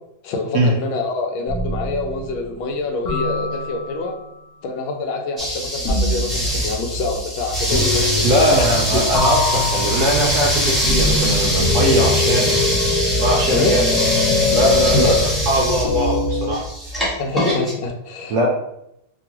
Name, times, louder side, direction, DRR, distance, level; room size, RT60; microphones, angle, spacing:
voice 1, 0.2-4.2 4.6-9.0 13.5-13.8 14.9-15.2 17.2-18.5, left 3 dB, 90° left, 3 dB, 1.4 m, -25 dB
sound 1, 1.5-2.3 3.0-4.1 5.8-6.4 7.7-8.9 9.1-16.5, left 3 dB, 70° left, 0.9 m, -23 dB
sound 2, 5.4-17.7, equal, ahead, 0.5 m, -22 dB
sound 3, 7.7-8.1 8.4-9.5 9.8-10.8, equal, 55° right, 1.2 m, -32 dB
voice 2, 8.2-12.5 13.2-13.9 14.5-16.6 18.3-18.5, right 1 dB, 75° right, -2 dB, 0.9 m, -20 dB
3.5 x 2.3 x 2.8 m, 0.80 s
omnidirectional pair, 2.1 m